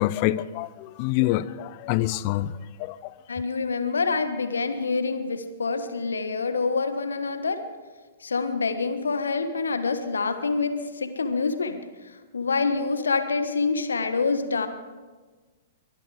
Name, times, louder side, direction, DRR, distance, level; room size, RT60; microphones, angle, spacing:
voice 1, 0.0-3.1, left 15 dB, 40° left, 0.6 m, -26 dB
voice 2, 3.3-7.6 8.2-14.7, left 4 dB, 75° left, 1.4 m, -26 dB
23.0 x 12.0 x 4.9 m
figure-of-eight pair, 110°, 0 cm